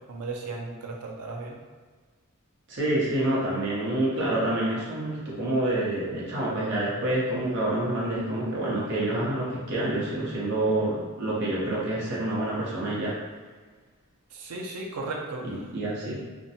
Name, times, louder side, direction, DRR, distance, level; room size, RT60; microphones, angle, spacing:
voice 1, 0.1-1.6 14.3-15.5, right 3 dB, 85° right, 0 dB, 0.5 m, -35 dB
voice 2, 2.7-13.2 15.4-16.2, right 1 dB, 55° right, -7 dB, 0.7 m, -27 dB
2.5 x 2.1 x 2.7 m, 1.4 s
head